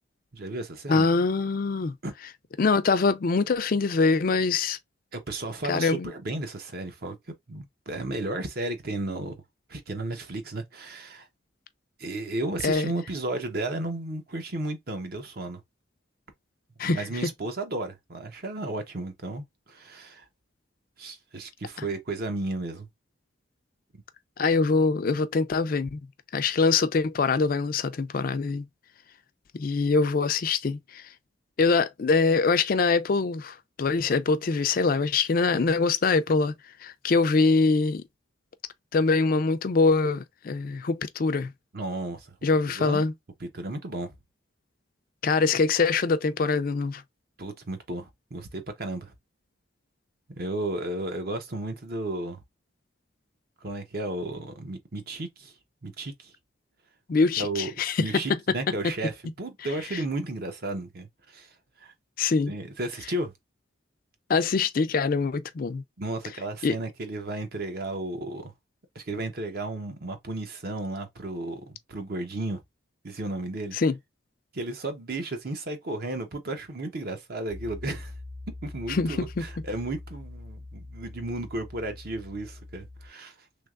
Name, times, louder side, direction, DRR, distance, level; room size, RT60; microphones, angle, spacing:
voice 1, 0.3-1.1 2.0-2.1 5.1-7.2 7.5-9.4 9.7-11.3 12.0-15.6 16.8-20.2 21.0-22.9 41.7-42.3 42.7-43.1 43.4-44.1 47.4-49.1 50.3-52.4 53.6-55.5 55.8-56.3 57.4-57.7 58.0-61.5 61.8-61.9 62.5-63.3 66.0-68.5 68.9-72.6 73.0-73.8 74.5-78.1 78.6-83.3, right 2 dB, 50° right, 0.8 m, -33 dB
voice 2, 0.9-1.9 2.6-4.8 5.7-6.1 12.6-12.9 16.8-17.0 24.4-26.0 26.3-28.6 29.5-31.0 31.6-36.5 36.8-38.0 38.9-41.5 42.4-43.1 45.2-47.0 57.1-58.1 62.2-62.5 64.3-65.8 66.6-66.7 73.7-74.0 78.9-79.5, left 4 dB, 45° left, 0.4 m, -24 dB
Piano, 77.5-83.1, left 2 dB, 15° right, 0.6 m, -43 dB
3.3 x 3.2 x 2.4 m
head